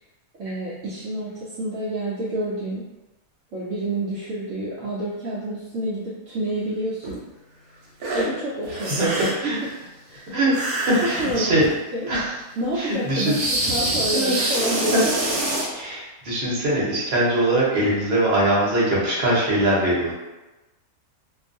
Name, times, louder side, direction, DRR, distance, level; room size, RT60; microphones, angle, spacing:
voice 1, 0.4-2.8 3.5-7.2 8.1-9.0 9.4-9.5 10.1-10.3 11.2-12.1 12.6-13.4 13.7-15.4, right 1 dB, 70° right, -7 dB, 0.9 m, -28 dB
sound 1, 7.0-7.2 8.0-8.3 8.6-9.5 10.5-11.8 12.1-12.2 13.2-15.7, right 1 dB, 90° right, 1.2 m, -26 dB
voice 2, 8.9-9.6 10.3-11.6 12.1-12.3 12.8-13.4 14.1-14.5 14.9-15.0 15.7-20.1, right 1 dB, 45° right, -6 dB, 1.0 m, -22 dB
2.6 x 2.3 x 2.5 m, 1.1 s
omnidirectional pair, 1.5 m